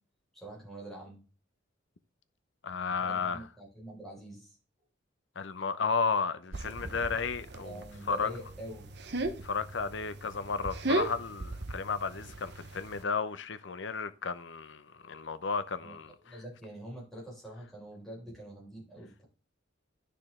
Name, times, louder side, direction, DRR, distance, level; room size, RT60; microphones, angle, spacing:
voice 1, 0.3-1.2 3.0-4.6 7.6-8.9 15.8-15.9 16.2-19.2, right 1 dB, ahead, 5.1 m, -45 dB
voice 2, 2.6-3.5 5.4-8.3 9.4-16.3, left 5 dB, 65° left, 0.7 m, -33 dB
sound 1, 6.5-13.0, right 2 dB, 60° right, 0.9 m, -37 dB
10.0 x 6.6 x 3.7 m
head